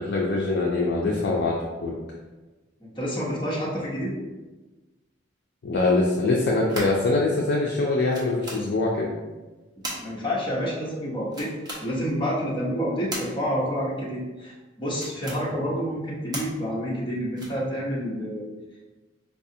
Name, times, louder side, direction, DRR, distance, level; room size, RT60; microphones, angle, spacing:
voice 1, 0.0-2.0 5.6-9.1, left 2 dB, 60° left, -3 dB, 0.5 m, -23 dB
voice 2, 2.8-4.2 10.0-11.5 11.8-18.5, equal, 25° left, -5 dB, 0.9 m, -28 dB
sound 1, 6.3-7.1 7.8-7.9 8.1-8.6 9.8-10.0 11.3-11.8 13.1-13.2 14.9-15.4 16.3-16.5 17.4-17.7, right 1 dB, 20° right, 0.9 m, -35 dB
4.7 x 2.3 x 2.7 m, 1.2 s
head